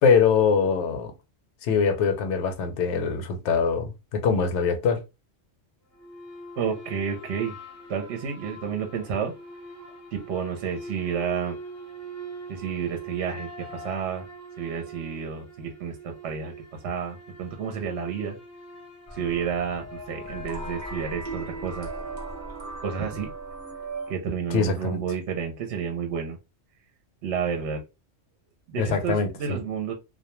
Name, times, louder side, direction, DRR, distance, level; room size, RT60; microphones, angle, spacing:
voice 1, 0.0-1.1 1.6-5.0 24.5-25.0 28.8-29.6, left 6 dB, 70° left, 0.9 m, -23 dB
sound 1, 5.9-22.5, right 3 dB, 20° left, 0.5 m, -43 dB
voice 2, 6.6-7.6 7.9-9.3 10.1-11.6 12.5-14.2 14.6-18.4 19.1-21.9 22.8-23.3 24.1-26.4 27.2-27.8 28.7-29.9, right 7 dB, 70° right, 0.8 m, -30 dB
sound 2, 19.1-24.1, right 2 dB, 30° right, 0.6 m, -37 dB
2.2 x 2.1 x 2.9 m
omnidirectional pair, 1.3 m